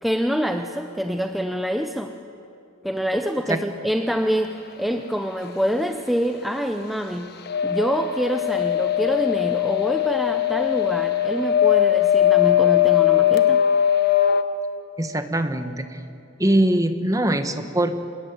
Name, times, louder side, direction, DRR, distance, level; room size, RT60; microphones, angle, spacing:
voice 1, 0.0-2.2 2.8-7.3 7.6-13.6, equal, ahead, 5 dB, 0.8 m, -26 dB
sound 1, 7.5-14.4, left 11 dB, 55° left, 1.1 m, -20 dB
voice 2, 15.0-16.0 16.4-17.9, right 1 dB, 15° right, 8 dB, 1.3 m, -22 dB
26.0 x 20.5 x 9.2 m, 2.6 s
head